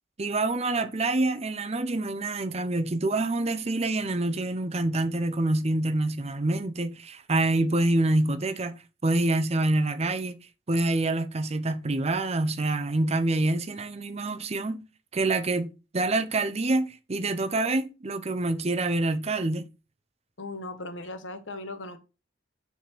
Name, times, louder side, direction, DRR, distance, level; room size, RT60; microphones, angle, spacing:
voice 1, 0.2-8.7 9.0-10.3 10.7-14.8 15.1-19.6, right 2 dB, 35° right, 0.7 m, -26 dB
voice 2, 20.4-22.0, left 2 dB, 75° left, 1.3 m, -37 dB
5.9 x 4.1 x 6.0 m
head